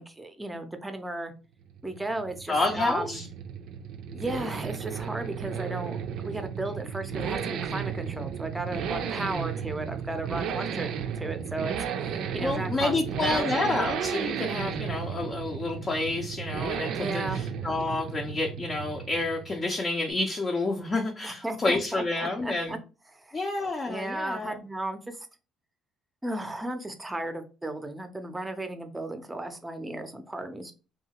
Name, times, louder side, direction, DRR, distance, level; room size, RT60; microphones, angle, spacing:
voice 1, 0.0-1.3 1.8-3.2 4.1-6.0 6.2-10.9 11.2-12.9 13.2-13.7 17.0-17.4 21.2-22.8 23.1-23.4 23.9-25.3 26.2-30.7, right 2 dB, 10° right, 7 dB, 0.6 m, -35 dB
sound 1, 1.6-19.6, right 7 dB, 70° right, 0.4 m, -34 dB
voice 2, 2.5-3.3 12.4-22.8 23.3-24.5, left 2 dB, 35° left, 1 dB, 0.5 m, -29 dB
2.7 x 2.3 x 2.8 m, 0.34 s
supercardioid pair, 75°, 0 cm